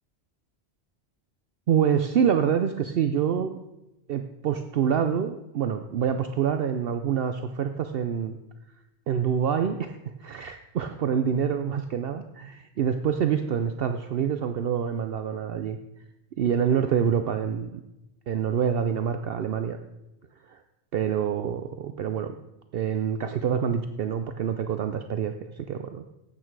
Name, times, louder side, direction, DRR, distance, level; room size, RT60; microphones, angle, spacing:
voice 1, 1.7-3.6 4.1-8.4 9.1-15.8 16.4-17.8 18.3-19.8 20.4-20.6 20.9-22.4 22.7-26.0, right 8 dB, 65° right, 8 dB, 0.8 m, -26 dB
12.0 x 8.6 x 4.6 m, 0.95 s
omnidirectional pair, 1.1 m